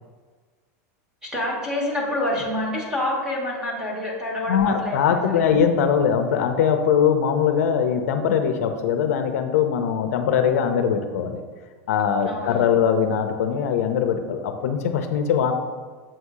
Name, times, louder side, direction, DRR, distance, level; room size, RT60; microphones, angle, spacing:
voice 1, 1.2-5.7 12.2-12.7, left 1 dB, 5° right, -3 dB, 0.9 m, -28 dB
voice 2, 4.5-11.4 11.9-15.5, left 7 dB, 65° left, 6 dB, 0.5 m, -21 dB
7.5 x 2.7 x 4.7 m, 1.5 s
supercardioid pair, 180°, 9 cm